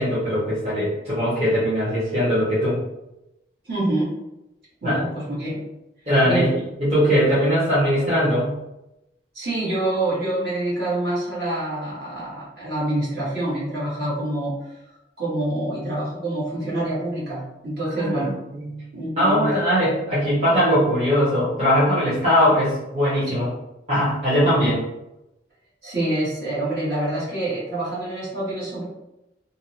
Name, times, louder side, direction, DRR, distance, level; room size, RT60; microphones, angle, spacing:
voice 1, 0.0-2.8 4.8-5.0 6.1-6.5 6.8-8.5 18.0-18.7 19.2-23.5 23.9-24.8, equal, 35° right, -10 dB, 0.8 m, -20 dB
voice 2, 3.6-4.1 4.8-5.6 6.2-6.5 9.3-14.8 15.2-18.3 18.9-19.5 23.3-23.4 25.8-28.9, right 1 dB, 60° right, -8 dB, 1.2 m, -26 dB
2.6 x 2.0 x 2.7 m, 0.91 s
head